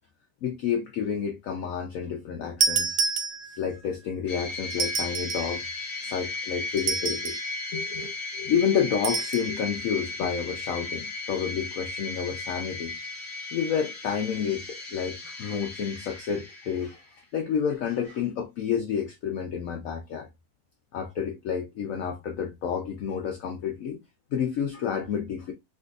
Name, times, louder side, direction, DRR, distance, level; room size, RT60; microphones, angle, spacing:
voice 1, 0.4-3.0 3.5-5.6 6.0-7.4 7.7-13.0 13.5-17.0 17.3-20.3 20.9-24.0 24.3-25.5, left 7 dB, 75° left, 0.7 m, -30 dB
sound 1, 2.6-3.8 4.7-5.6 6.8-7.5 9.0-9.5, right 5 dB, 80° right, 0.6 m, -28 dB
sound 2, 4.3-17.1, left 3 dB, 45° left, 1.0 m, -36 dB
3.5 x 2.8 x 2.3 m
omnidirectional pair, 1.9 m